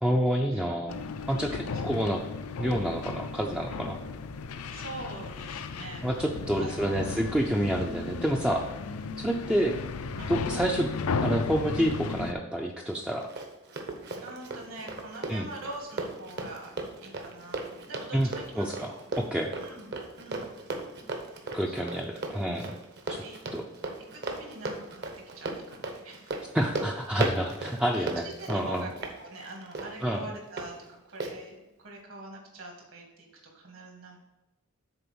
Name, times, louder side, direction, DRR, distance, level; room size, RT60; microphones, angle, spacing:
voice 1, 0.0-1.0 1.3-2.2 2.6-4.0 6.0-8.6 9.2-9.7 10.3-10.9 11.2-13.3 15.3-15.5 18.1-18.3 18.6-19.5 21.5-22.8 23.1-23.2 23.5-23.7 26.5-28.2 28.5-28.9 30.0-30.3, equal, 5° right, 1 dB, 0.4 m, -28 dB
sound 1, 0.9-12.3, left 4 dB, 80° left, 0.5 m, -35 dB
voice 2, 4.7-6.1 6.4-7.2 10.2-10.4 14.2-16.7 17.0-19.0 19.6-20.5 21.7-21.9 23.1-23.4 24.1-25.0 25.3-26.4 27.9-28.9 29.2-33.3 33.5-34.2, right 2 dB, 65° right, 0 dB, 2.0 m, -44 dB
Run, 12.9-30.7 31.2-31.3, right 2 dB, 50° right, 0.9 m, -37 dB
6.7 x 4.3 x 6.1 m, 1.0 s
head